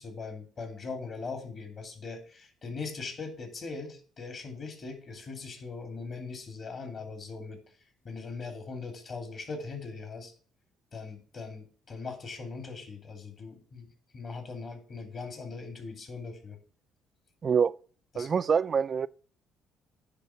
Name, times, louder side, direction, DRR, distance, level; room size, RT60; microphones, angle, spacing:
voice 1, 0.0-7.6 8.0-10.3 10.9-13.9 14.1-16.6 18.1-18.3, left 4 dB, 45° left, 2.4 m, -40 dB
voice 2, 17.4-17.7 18.2-19.1, right 6 dB, 40° right, 0.3 m, -25 dB
9.9 x 3.6 x 5.6 m
supercardioid pair, 80°, 0 cm